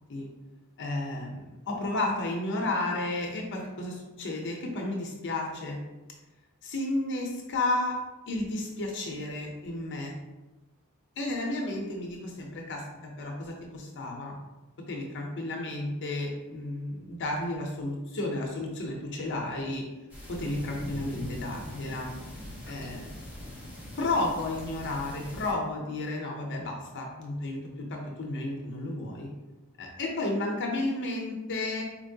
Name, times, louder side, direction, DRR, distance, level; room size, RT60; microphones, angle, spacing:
voice 1, 0.8-5.8 6.6-8.0 8.3-10.1 11.2-12.8 13.2-14.4 14.9-19.8 20.3-22.1 22.7-23.1 24.0-29.3 29.8-31.8, left 2 dB, 55° left, 0 dB, 0.6 m, -32 dB
sound 1, 20.1-25.5, left 1 dB, 10° right, 1.1 m, -42 dB
4.4 x 2.8 x 2.7 m, 1.1 s
head